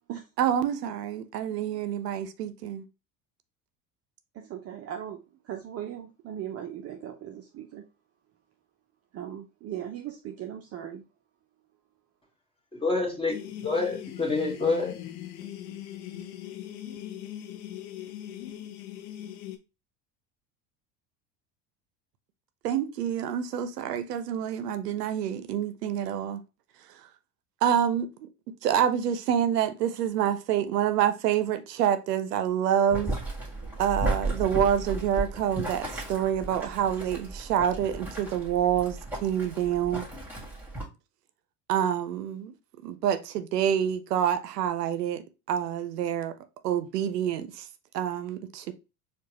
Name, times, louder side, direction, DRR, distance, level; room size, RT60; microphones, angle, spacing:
voice 1, 0.4-2.8 22.6-26.4 27.6-28.3 28.6-33.2 33.8-40.0 41.7-42.5 42.8-46.3 46.6-47.7 47.9-48.7, right 9 dB, 85° right, 0.5 m, -27 dB
voice 2, 4.3-7.8 9.1-11.0, right 10 dB, 35° right, 0.5 m, -38 dB
voice 3, 12.8-13.4 13.6-15.1, left 3 dB, 10° left, 1.3 m, -27 dB
sound 1, 13.3-19.6, left 11 dB, 60° left, 0.7 m, -40 dB
Boiling, 32.9-40.8, right 2 dB, 5° right, 1.7 m, -35 dB
4.5 x 2.3 x 2.8 m
hypercardioid pair, 75°, 46 cm